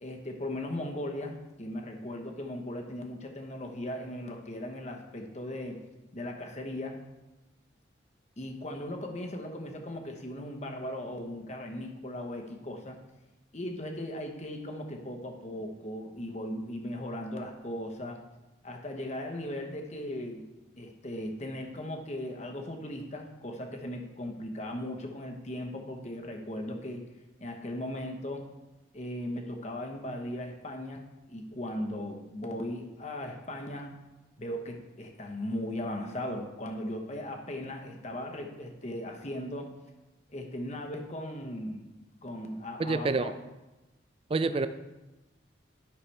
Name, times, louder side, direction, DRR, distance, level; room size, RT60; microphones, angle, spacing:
voice 1, 0.0-5.8 6.1-7.0 8.4-13.0 13.5-18.2 18.6-20.4 20.8-27.0 27.4-28.5 28.9-34.0 34.4-39.7 40.3-41.9 42.2-43.3, left 1 dB, 35° left, 3 dB, 0.9 m, -38 dB
voice 2, 42.8-43.3 44.3-44.7, right 3 dB, 30° right, 11 dB, 0.3 m, -27 dB
11.0 x 5.8 x 3.3 m, 1.0 s
head